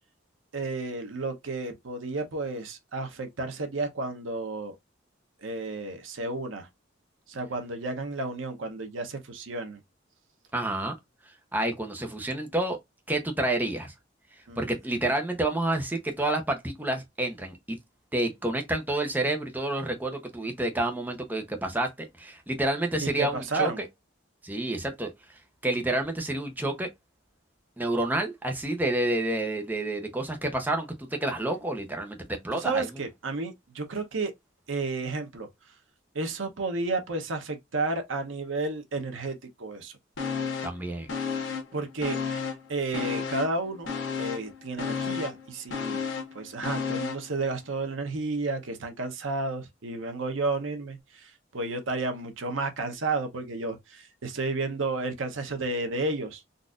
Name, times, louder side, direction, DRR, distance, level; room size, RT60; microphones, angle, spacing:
voice 1, 0.5-4.7 5.4-6.7 7.3-9.8 14.5-14.7 23.0-23.8 32.5-34.3 34.7-35.5 36.1-39.9 41.7-42.4 42.7-43.9 44.2-46.0 46.3-56.4, right 3 dB, 90° right, 0.8 m, -32 dB
voice 2, 10.5-10.9 11.5-12.8 13.1-13.9 14.6-17.8 18.1-23.9 24.4-25.1 25.6-26.9 27.8-32.2 32.4-32.9 40.6-41.1, right 1 dB, 10° right, 0.7 m, -29 dB
sound 1, 40.2-40.8 41.1-42.7 42.9-47.3 47.7-47.8, left 6 dB, 70° left, 1.0 m, -32 dB
4.0 x 2.5 x 2.4 m
head